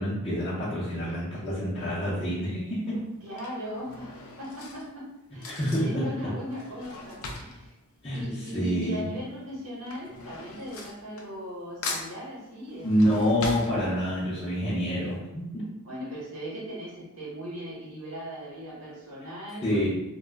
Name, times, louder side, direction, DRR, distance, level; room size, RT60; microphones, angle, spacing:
voice 1, 0.0-3.0 5.5-6.1 8.0-8.2 8.5-9.1 12.8-15.7 19.6-19.9, equal, 25° left, -11 dB, 0.6 m, -27 dB
Drawer open or close / Cutlery silverware, 1.8-2.2 3.0-8.9 9.2-11.6 11.8-14.4 14.8-14.9 15.1-15.2, left 3 dB, 70° left, 0.4 m, -40 dB
voice 2, 3.2-5.1 5.3-7.7 8.1-13.3 13.7-14.0 15.8-19.9, equal, 70° right, -6 dB, 0.9 m, -38 dB
2.2 x 2.0 x 3.3 m, 0.91 s
head